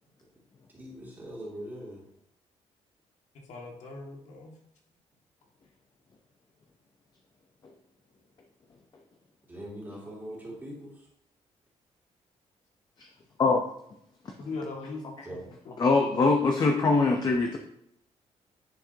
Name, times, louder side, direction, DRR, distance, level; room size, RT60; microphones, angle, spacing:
voice 1, 0.7-2.0 9.5-10.9 15.2-15.4, right 1 dB, 15° right, -4 dB, 2.6 m, -41 dB
voice 2, 3.5-4.5 14.4-15.4 15.7-15.9, left 3 dB, 75° left, -1 dB, 2.0 m, -40 dB
voice 3, 15.8-17.6, left 3 dB, 35° left, 3 dB, 0.7 m, -23 dB
10.0 x 6.4 x 2.8 m, 0.75 s
cardioid pair, 155°, 12 cm